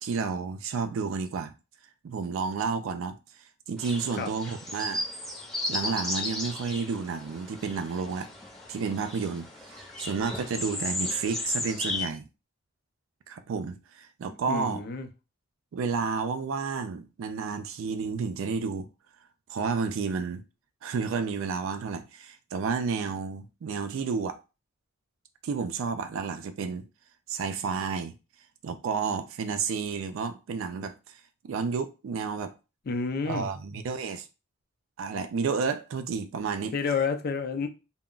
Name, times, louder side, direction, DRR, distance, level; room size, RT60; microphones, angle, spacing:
voice 1, 0.0-1.5 2.0-3.2 3.7-5.0 5.7-8.3 8.7-12.2 13.3-14.8 15.7-18.9 19.5-20.4 20.8-24.4 25.4-26.8 27.3-28.1 28.6-31.2 31.4-32.5 33.2-34.3 35.0-36.7, right 5 dB, 85° right, 0.4 m, -31 dB
sound 1, 3.8-12.1, left 2 dB, ahead, 0.6 m, -35 dB
voice 2, 14.5-15.1 32.9-33.5 36.7-37.7, left 5 dB, 50° left, 0.5 m, -29 dB
2.2 x 2.0 x 3.7 m
head